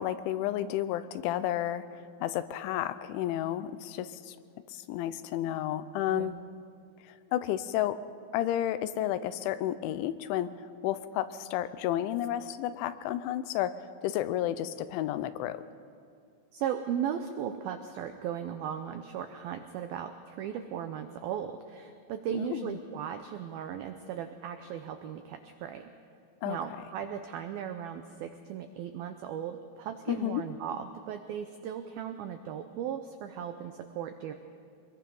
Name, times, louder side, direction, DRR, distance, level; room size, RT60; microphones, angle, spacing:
voice 1, 0.0-4.4 4.7-6.4 7.0-8.0 8.3-15.6 22.3-22.8 26.4-26.6 30.1-30.4, left 12 dB, 85° left, 13 dB, 3.1 m, -32 dB
voice 2, 6.1-6.5 16.5-25.9 26.5-34.3, right 9 dB, 85° right, 7 dB, 2.1 m, -37 dB
24.5 x 21.5 x 5.4 m, 2.3 s
omnidirectional pair, 5.3 m